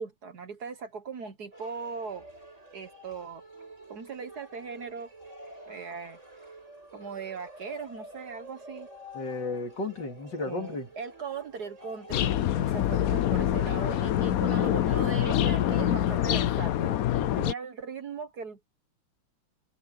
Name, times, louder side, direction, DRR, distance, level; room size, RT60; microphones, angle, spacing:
voice 1, 0.0-2.3 2.7-3.4 3.9-5.1 5.7-6.2 6.9-8.9 10.4-17.0 17.3-18.7, right 5 dB, 55° right, 1.5 m, -39 dB
sound 1, 1.5-17.1, right 1 dB, 35° right, 8.5 m, -49 dB
voice 2, 9.1-10.9 17.2-17.5, left 3 dB, 55° left, 3.2 m, -34 dB
sound 2, 12.1-17.5, left 11 dB, 90° left, 0.7 m, -25 dB
omnidirectional pair, 2.3 m